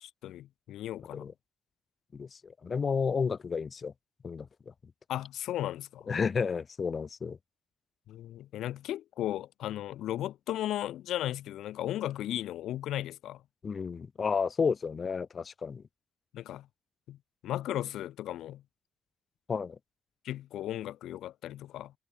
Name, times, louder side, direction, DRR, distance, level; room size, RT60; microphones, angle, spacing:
voice 1, 0.0-1.3 5.1-6.1 8.1-13.4 16.3-16.7 17.1-17.2 17.4-18.6 20.2-21.9, left 13 dB, 80° left, 0.7 m, -36 dB
voice 2, 2.1-3.9 4.2-4.5 6.1-7.4 13.6-15.8 19.5-19.8, left 5 dB, 40° left, 0.9 m, -31 dB
cardioid pair, 90°, 0 cm